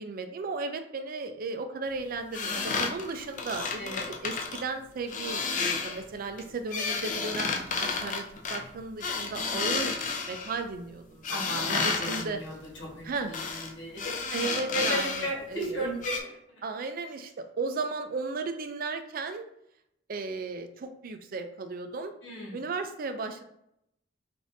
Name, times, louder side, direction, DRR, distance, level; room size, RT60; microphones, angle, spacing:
voice 1, 0.0-5.4 5.8-11.4 11.7-12.4 13.0-13.3 14.3-16.0 16.6-19.5 20.1-22.1 22.5-23.4, right 4 dB, 50° right, 7 dB, 0.4 m, -35 dB
sound 1, 2.3-4.6 5.1-6.0 6.4-10.6 11.2-12.2 13.3-13.7 14.0-15.3 15.6-15.7 16.0-16.2, left 4 dB, 45° left, 0.5 m, -31 dB
voice 2, 3.8-4.1 11.3-16.6 22.2-22.6, equal, 75° left, -3 dB, 1.4 m, -36 dB
5.0 x 2.6 x 2.6 m, 0.77 s
head